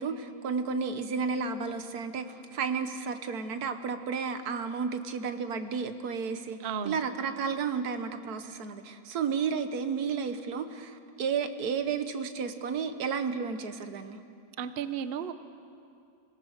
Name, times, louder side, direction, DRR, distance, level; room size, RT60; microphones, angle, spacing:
voice 1, 0.0-6.6 6.8-14.2, right 5 dB, 85° right, 9 dB, 1.6 m, -32 dB
voice 2, 6.6-7.0 14.6-15.3, right 8 dB, 50° right, 11 dB, 0.8 m, -33 dB
25.5 x 17.5 x 6.5 m, 2.5 s
omnidirectional pair, 1.6 m